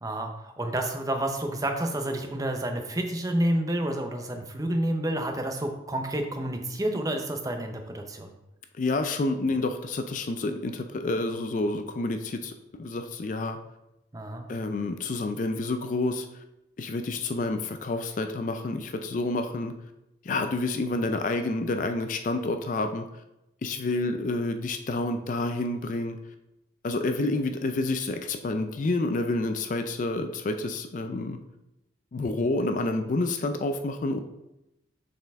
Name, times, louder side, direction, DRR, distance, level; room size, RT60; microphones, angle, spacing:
voice 1, 0.0-8.3 14.1-14.5, right 1 dB, 20° right, 4 dB, 0.6 m, -29 dB
voice 2, 8.8-13.6 14.5-16.4 16.8-19.7 20.2-23.2 23.6-26.2 26.8-31.4 32.1-34.2, left 2 dB, 40° left, 7 dB, 0.4 m, -29 dB
6.5 x 4.2 x 3.5 m, 0.91 s
head